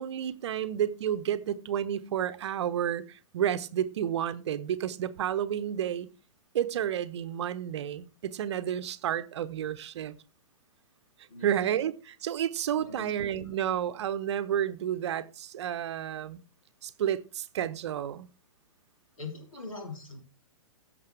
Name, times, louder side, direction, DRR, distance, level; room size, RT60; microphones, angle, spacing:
voice 1, 0.0-6.1 6.5-10.2 11.4-16.4 16.8-18.3, right 10 dB, 50° right, 0.8 m, -31 dB
voice 2, 12.8-13.1 19.2-20.2, left 3 dB, 70° left, 3.8 m, -41 dB
16.0 x 6.7 x 3.3 m
figure-of-eight pair, 115°, 18 cm